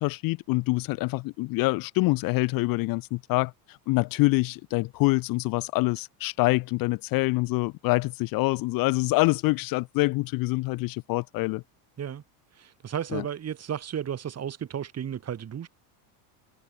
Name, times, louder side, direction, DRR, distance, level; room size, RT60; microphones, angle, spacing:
voice 1, 0.0-11.6 13.1-13.2, left 23 dB, 45° left, 0.6 m, -26 dB
voice 2, 12.5-15.7, right 9 dB, 30° right, 4.9 m, -33 dB
supercardioid pair, 120°, 48 cm